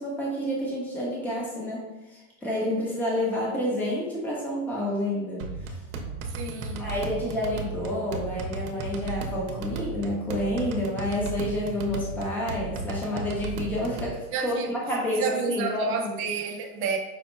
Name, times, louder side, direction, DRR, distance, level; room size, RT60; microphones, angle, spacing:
voice 1, 0.0-1.8 2.1-5.8 6.8-14.2 14.4-15.9, left 1 dB, 5° left, 0.8 m, -29 dB
sound 1, 5.4-14.1, right 4 dB, 65° right, 0.8 m, -35 dB
voice 2, 6.2-7.0 14.3-14.7 15.2-17.0, right 5 dB, 30° right, 0.6 m, -30 dB
5.4 x 2.1 x 4.4 m
supercardioid pair, 145°, 43 cm